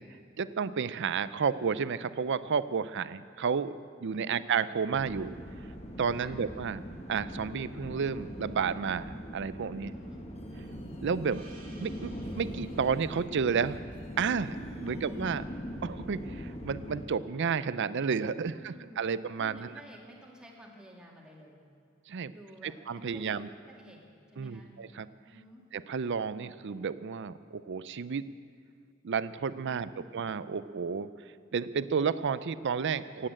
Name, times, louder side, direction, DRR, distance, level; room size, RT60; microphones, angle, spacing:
voice 1, 0.4-3.7 4.0-5.3 6.0-6.8 7.1-9.9 11.0-11.4 11.8-13.8 14.2-15.4 15.8-19.7 22.1-22.3 22.6-23.5 24.4-25.1 25.7-28.3 29.0-31.1 31.5-33.3, right 6 dB, 60° right, 15 dB, 0.5 m, -31 dB
voice 2, 4.1-4.4 6.1-6.4 9.8-10.3 14.9-15.5 18.3-21.6 22.3-24.0 24.3-24.7 25.2-25.6 29.6-30.2, equal, 5° right, -3 dB, 2.4 m, -52 dB
sound 1, 4.9-17.1, equal, 30° left, 1.3 m, -41 dB
Gong, 11.3-16.0, right 3 dB, 40° right, 2.3 m, -60 dB
16.5 x 8.7 x 8.8 m, 2.2 s
head